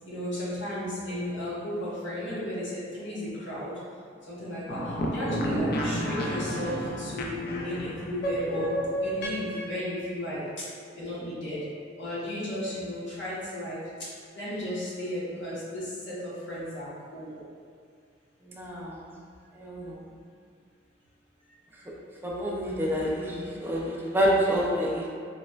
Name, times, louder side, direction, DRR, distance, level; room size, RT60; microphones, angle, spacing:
voice 1, 0.0-3.7 4.3-8.7 9.0-10.4 10.9-11.6 12.0-13.8 14.3-17.3, left 1 dB, 70° left, -10 dB, 1.0 m, -34 dB
sound 1, 4.7-9.8, equal, 55° left, 0.4 m, -31 dB
voice 2, 18.4-19.2 19.5-20.0 22.2-25.1, equal, 10° right, -4 dB, 0.4 m, -28 dB
4.0 x 2.0 x 2.3 m, 2.2 s
head